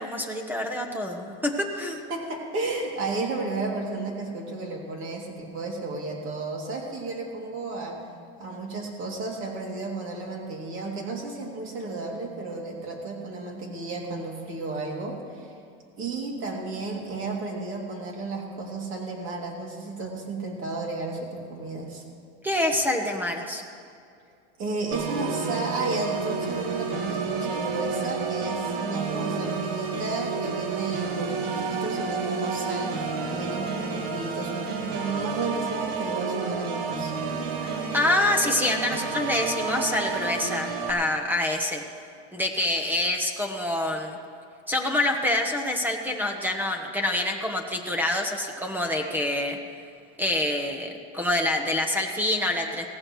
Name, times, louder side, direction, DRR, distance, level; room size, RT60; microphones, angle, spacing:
voice 1, 0.0-2.0 22.4-23.6 37.6-41.8 42.3-44.2 44.7-49.6 50.2-52.9, left 1 dB, 5° right, 3 dB, 1.0 m, -26 dB
voice 2, 2.1-8.0 8.4-15.5 16.0-22.0 24.6-37.1, right 3 dB, 40° right, -1 dB, 2.7 m, -33 dB
Organ, 24.9-40.9, right 5 dB, 80° right, 1.8 m, -30 dB
17.5 x 15.0 x 3.2 m, 2.3 s
supercardioid pair, 135°, 31 cm